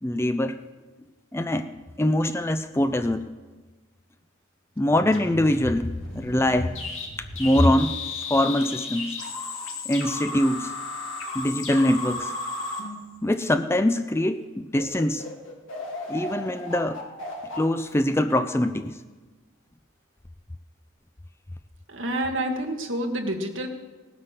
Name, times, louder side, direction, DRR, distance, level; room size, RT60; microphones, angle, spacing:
voice 1, 0.0-0.6 1.3-1.7 2.0-3.3 4.8-6.7 7.2-8.0 8.3-9.2 9.9-10.7 11.3-12.4 13.2-15.2 16.1-17.0 17.6-19.0, left 1 dB, 10° left, 9 dB, 0.4 m, -23 dB
sound 1, 4.9-13.7 14.3-14.4 14.7-18.6, left 3 dB, 60° left, 2.9 m, -35 dB
voice 2, 21.9-23.7, right 1 dB, 60° right, 3 dB, 1.8 m, -28 dB
18.0 x 9.9 x 6.6 m, 1.3 s
head